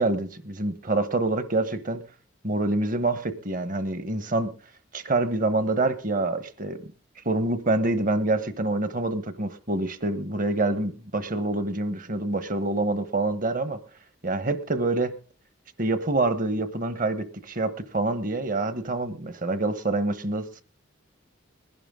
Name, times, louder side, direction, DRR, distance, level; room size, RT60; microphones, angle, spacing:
voice 1, 0.0-2.0 2.4-4.5 4.9-6.8 7.2-13.8 14.2-15.1 15.8-20.6, right 2 dB, 40° right, 13 dB, 1.1 m, -26 dB
20.5 x 11.0 x 3.7 m, 0.35 s
head